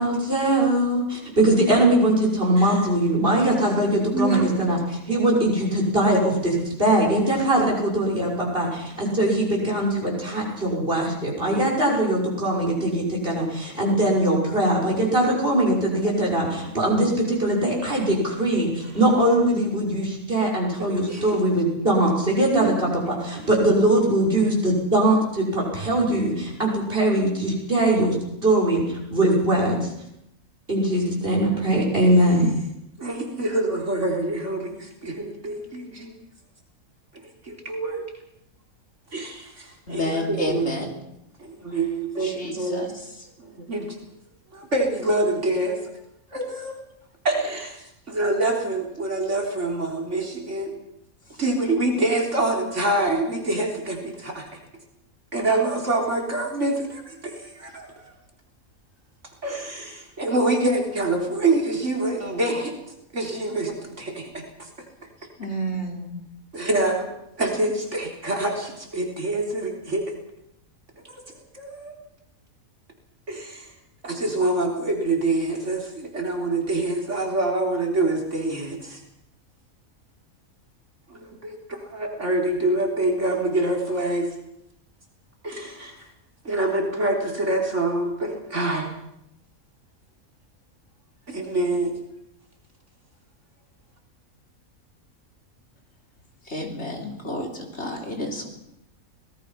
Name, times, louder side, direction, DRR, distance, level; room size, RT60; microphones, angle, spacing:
voice 1, 0.0-28.2 28.4-28.8 29.1-29.9 30.7-32.6, right 1 dB, 40° right, -2 dB, 6.3 m, -21 dB
voice 2, 4.1-4.5 12.4-12.5 18.8-18.9 20.8-21.4 22.5-22.8 26.1-26.2 33.0-36.1 37.4-38.0 39.1-40.7 41.4-42.8 43.4-44.0 44.5-45.8 46.3-46.8 47.2-50.7 51.4-54.5 55.3-58.1 59.4-62.7 63.1-64.7 66.5-67.1 67.4-70.1 71.0-71.2 71.5-71.9 73.3-73.7 74.0-79.0 81.1-84.3 85.4-86.0 86.4-88.9 91.3-91.9, right 2 dB, 55° right, 1 dB, 3.9 m, -26 dB
voice 3, 39.9-40.9 42.2-42.9 65.4-66.2 96.5-98.5, equal, 50° left, 1 dB, 3.9 m, -30 dB
25.5 x 19.0 x 5.8 m, 0.81 s
omnidirectional pair, 1.5 m